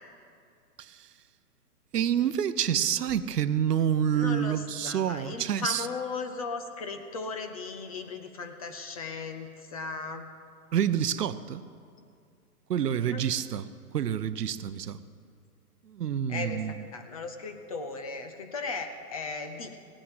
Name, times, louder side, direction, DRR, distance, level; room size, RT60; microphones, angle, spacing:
voice 1, 1.9-5.9 10.7-11.6 12.7-13.7 13.9-15.0 15.9-16.8, right 9 dB, 75° right, 14 dB, 0.8 m, -28 dB
voice 2, 4.1-10.3 13.0-13.2 16.3-19.8, left 4 dB, 25° left, 7 dB, 0.6 m, -37 dB
17.0 x 8.9 x 7.7 m, 2.3 s
hypercardioid pair, 150°, 47 cm